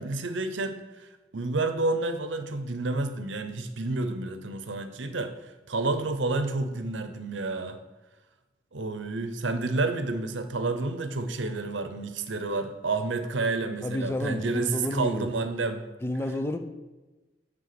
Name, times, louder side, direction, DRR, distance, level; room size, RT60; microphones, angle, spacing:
voice 1, 0.0-7.8 8.7-15.8, right 3 dB, 80° right, 9 dB, 0.8 m, -30 dB
voice 2, 13.8-15.3 16.0-16.6, left 1 dB, 15° left, 7 dB, 0.5 m, -30 dB
9.0 x 3.6 x 6.9 m, 1.2 s
head